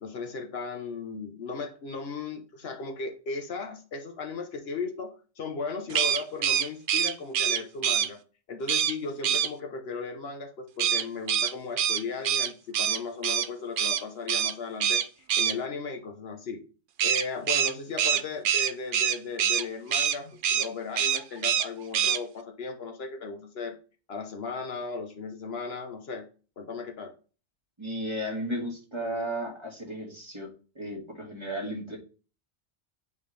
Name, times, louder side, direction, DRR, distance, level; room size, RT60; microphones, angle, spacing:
voice 1, 0.0-8.2 8.5-16.6 17.0-23.8 24.1-26.3 26.6-27.1, left 4 dB, 65° left, 5 dB, 1.1 m, -36 dB
sound 1, 5.9-8.1 8.7-8.9 9.2-9.5 10.8-13.5 13.8-14.0 14.3-14.5 14.8-15.5 17.0-19.6 19.9-20.2 20.4-20.7 21.0-21.7 21.9-22.2, right 9 dB, 60° right, 0.6 m, -25 dB
voice 2, 27.8-30.5 30.8-32.0, equal, 25° right, -1 dB, 1.8 m, -34 dB
8.5 x 3.5 x 3.2 m, 0.36 s
omnidirectional pair, 1.1 m